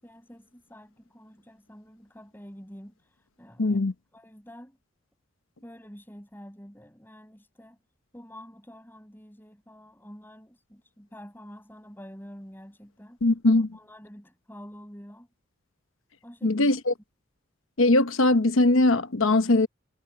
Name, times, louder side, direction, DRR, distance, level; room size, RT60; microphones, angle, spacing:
voice 1, 0.0-3.0 3.4-3.8 4.1-4.8 5.6-7.8 8.1-13.2 13.7-15.3 16.2-16.6, equal, 10° left, 7.2 m, -47 dB
voice 2, 3.6-3.9 13.2-13.7 16.4-16.9 17.8-19.7, left 2 dB, 80° left, 1.0 m, -21 dB
head